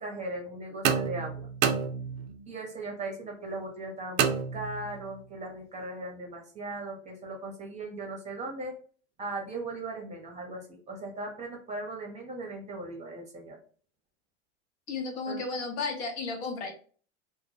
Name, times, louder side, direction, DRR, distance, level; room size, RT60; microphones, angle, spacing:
voice 1, 0.0-1.5 2.5-8.7 9.2-13.6 15.3-15.4, right 2 dB, 20° right, 2 dB, 0.7 m, -38 dB
sound 1, 0.8-2.5 4.2-5.1, right 7 dB, 65° right, 0.5 m, -29 dB
voice 2, 14.9-16.7, left 4 dB, 60° left, 3 dB, 0.8 m, -33 dB
2.1 x 2.0 x 3.1 m, 0.43 s
hypercardioid pair, 105°, 35 cm